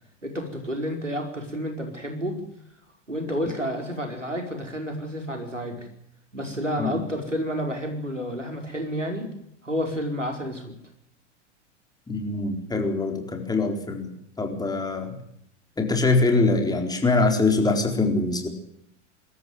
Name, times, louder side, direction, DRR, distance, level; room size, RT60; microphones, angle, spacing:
voice 1, 0.2-2.3 3.1-5.9 6.3-9.3 9.6-10.7, equal, 90° right, 3 dB, 5.0 m, -30 dB
voice 2, 12.1-15.2 15.8-18.5, left 3 dB, 10° left, 3 dB, 4.3 m, -23 dB
24.5 x 13.5 x 9.6 m, 0.74 s
figure-of-eight pair, 85°, 36 cm